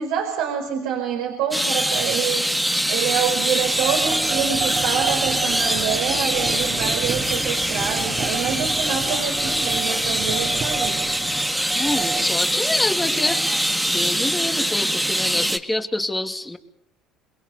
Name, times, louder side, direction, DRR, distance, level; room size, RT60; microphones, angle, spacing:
voice 1, 0.0-11.1, right 8 dB, 75° right, 2 dB, 4.8 m, -27 dB
sound 1, 1.5-15.6, equal, 5° right, 1.9 m, -23 dB
sound 2, 2.7-2.8 3.0-13.7, right 6 dB, 45° right, 3.6 m, -32 dB
voice 2, 11.7-13.4 13.9-16.6, left 2 dB, 10° left, 7 dB, 2.8 m, -26 dB
28.5 x 22.0 x 6.9 m, 0.74 s
hypercardioid pair, 65°, 0 cm